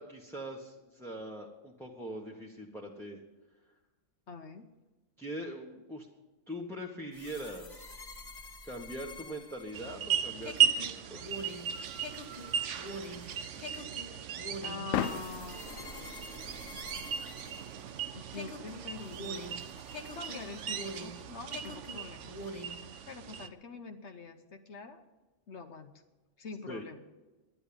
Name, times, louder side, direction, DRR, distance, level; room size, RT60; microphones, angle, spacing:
voice 1, 0.0-3.2 5.2-6.1 6.5-7.8 8.6-11.2 26.7-26.8, right 1 dB, ahead, -2 dB, 1.2 m, -42 dB
voice 2, 4.3-4.6 14.6-15.6 18.1-19.6 20.1-22.3 23.1-25.0 25.5-25.9 26.4-27.0, left 4 dB, 60° left, 6 dB, 1.1 m, -45 dB
sound 1, 7.1-18.0 18.3-21.2 21.5-22.8, left 1 dB, 35° left, 1.5 m, -45 dB
sound 2, 9.7-23.5, right 9 dB, 70° right, 1.0 m, -36 dB
sound 3, 11.0-22.3, left 10 dB, 80° left, 1.0 m, -44 dB
11.5 x 10.0 x 8.7 m, 1.1 s
omnidirectional pair, 1.4 m